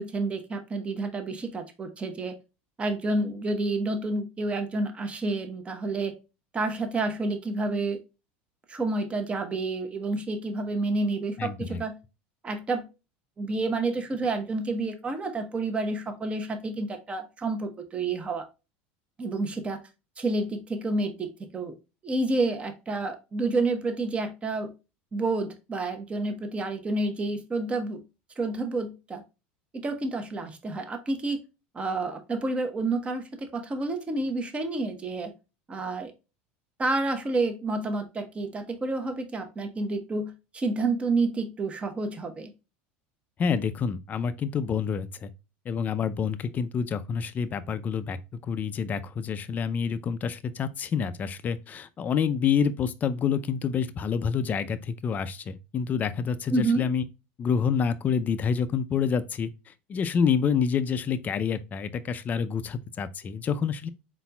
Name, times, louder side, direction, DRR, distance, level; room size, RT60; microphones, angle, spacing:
voice 1, 0.0-2.3 2.8-6.1 6.5-8.0 8.7-11.9 12.4-12.8 13.4-18.5 19.2-19.8 20.2-21.7 22.0-24.7 25.1-28.0 28.4-29.2 29.8-31.4 31.7-35.3 35.7-36.1 36.8-42.5 56.5-56.8, right 2 dB, 20° right, 0.9 m, -29 dB
voice 2, 11.4-11.8 43.4-45.3 45.7-57.0 57.4-63.9, left 6 dB, 30° left, 0.4 m, -28 dB
4.2 x 4.0 x 2.2 m
supercardioid pair, 120°, 5 cm